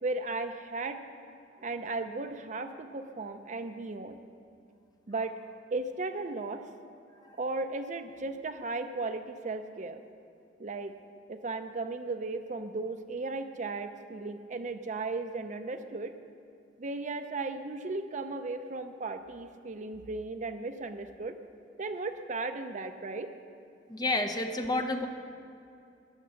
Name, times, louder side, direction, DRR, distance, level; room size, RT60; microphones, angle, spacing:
voice 1, 0.0-1.0 1.6-4.2 5.1-5.3 5.7-6.6 7.4-10.0 10.6-10.9 11.3-16.1 16.8-21.3 21.8-23.3, right 3 dB, 45° right, 8 dB, 0.6 m, -36 dB
voice 2, 23.9-25.1, left 2 dB, 25° left, 5 dB, 0.9 m, -30 dB
19.5 x 6.9 x 6.4 m, 2.5 s
head